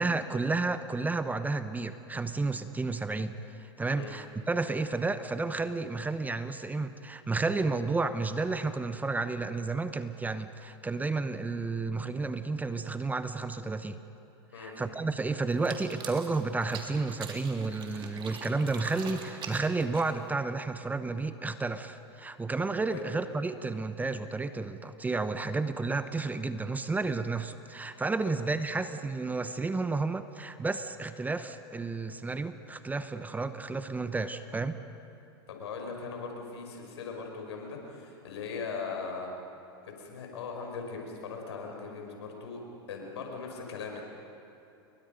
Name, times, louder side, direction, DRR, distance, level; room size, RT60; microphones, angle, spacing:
voice 1, 0.0-14.0 14.6-34.8, right 3 dB, 10° right, 11 dB, 0.9 m, -31 dB
sound 1, 15.5-20.4, right 6 dB, 35° right, 3.1 m, -44 dB
voice 2, 35.5-39.3 40.0-44.0, left 5 dB, 80° left, 2 dB, 5.5 m, -39 dB
29.5 x 22.5 x 5.3 m, 2.9 s
hypercardioid pair, 105°, 14 cm